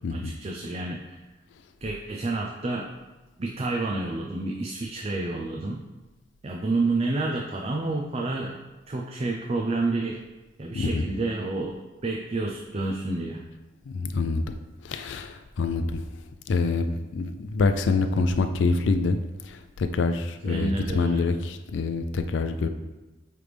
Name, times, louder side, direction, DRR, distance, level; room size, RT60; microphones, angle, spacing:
voice 1, 0.1-1.2 1.8-2.9 3.4-5.8 6.4-8.6 8.9-10.2 10.6-13.4 20.4-21.2, right 2 dB, 35° right, 1 dB, 0.5 m, -29 dB
voice 2, 13.9-14.5 14.8-16.0 16.5-19.2 19.5-22.7, left 3 dB, 70° left, 8 dB, 0.4 m, -26 dB
8.8 x 3.3 x 3.4 m, 1.1 s
head